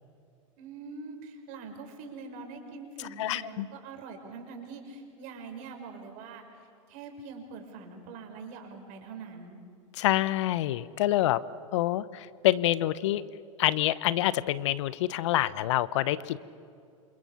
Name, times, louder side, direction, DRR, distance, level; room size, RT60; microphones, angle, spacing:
voice 1, 0.6-6.4 6.9-9.6, right 4 dB, 50° right, 4 dB, 5.9 m, -43 dB
voice 2, 3.2-3.7 9.9-11.4 11.7-13.2 13.6-16.4, left 14 dB, 60° left, 18 dB, 0.9 m, -26 dB
28.0 x 27.5 x 7.2 m, 2.4 s
hypercardioid pair, 95°, 17 cm